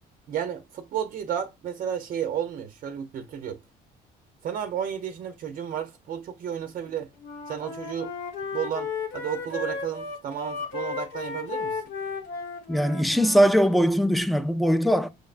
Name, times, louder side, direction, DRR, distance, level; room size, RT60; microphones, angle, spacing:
voice 1, 0.3-3.6 4.4-7.1 7.5-8.1 8.5-11.8, right 9 dB, 55° right, 0.5 m, -32 dB
Wind instrument woodwind instrument, 7.2-13.5, left 5 dB, 75° left, 1.1 m, -34 dB
voice 2, 12.7-15.1, equal, ahead, 0.4 m, -21 dB
6.2 x 2.1 x 2.4 m
cardioid pair, 110°, 17 cm